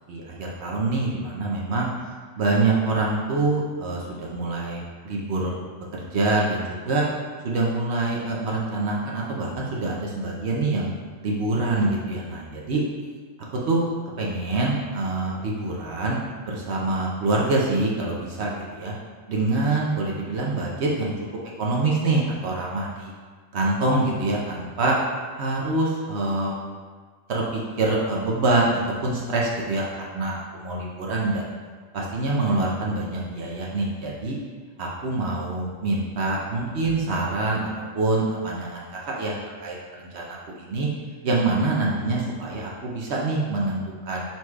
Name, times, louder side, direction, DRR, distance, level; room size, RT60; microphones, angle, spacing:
voice 1, 0.1-5.5 5.9-7.0 7.4-10.9 11.2-12.8 13.7-13.9 14.2-16.2 16.5-18.9 19.3-21.1 21.6-23.1 23.5-25.0 25.4-26.5 27.3-31.4 31.9-34.4 34.8-39.3 39.6-40.9 41.2-44.2, right 2 dB, 65° right, -3 dB, 0.9 m, -25 dB
4.2 x 2.3 x 4.6 m, 1.5 s
omnidirectional pair, 1.3 m